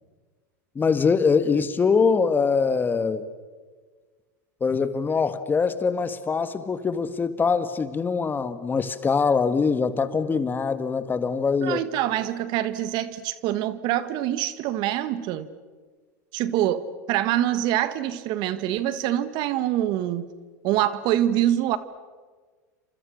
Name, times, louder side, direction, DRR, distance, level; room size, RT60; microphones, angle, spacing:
voice 1, 0.7-3.3 4.6-11.8, left 5 dB, 20° left, 11 dB, 1.7 m, -23 dB
voice 2, 11.6-15.5 16.3-20.3 20.6-21.8, right 12 dB, 55° right, 13 dB, 1.5 m, -25 dB
29.0 x 27.0 x 6.5 m, 1.5 s
hypercardioid pair, 100°, 9 cm